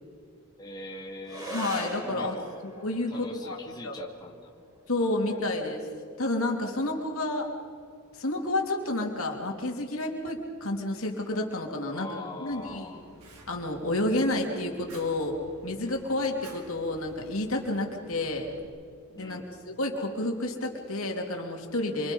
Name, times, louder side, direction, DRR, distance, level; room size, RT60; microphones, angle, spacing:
voice 1, 0.6-2.6 3.1-4.5 5.2-5.4 11.9-13.1 19.1-19.5, left 1 dB, 20° left, -1 dB, 2.4 m, -42 dB
sound 1, 1.2-10.2, equal, 15° right, 6.0 m, -44 dB
voice 2, 1.5-2.4 2.6-3.6 3.8-4.0 4.9-5.9 6.2-7.5 8.1-12.1 12.4-12.9 13.5-15.4 15.6-18.5 19.1-19.4 19.6-22.1, left 2 dB, 65° left, 1 dB, 3.2 m, -30 dB
Fire, 12.5-18.6, right 1 dB, 90° right, 4.4 m, -52 dB
27.0 x 26.0 x 5.5 m, 2.2 s
head